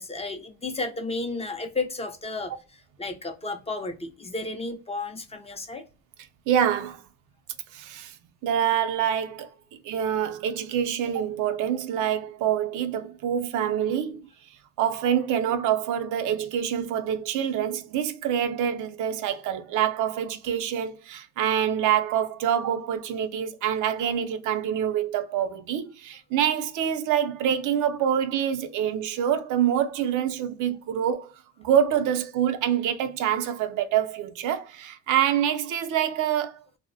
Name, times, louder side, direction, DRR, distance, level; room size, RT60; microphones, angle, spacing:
voice 1, 0.0-2.5 3.0-5.8, left 3 dB, 20° left, 0.4 m, -32 dB
voice 2, 6.5-7.0 7.7-8.1 8.4-9.5 9.8-14.2 14.8-31.3 31.6-36.6, right 9 dB, 80° right, 0.5 m, -26 dB
2.6 x 2.0 x 2.5 m
cardioid pair, 90°, 30 cm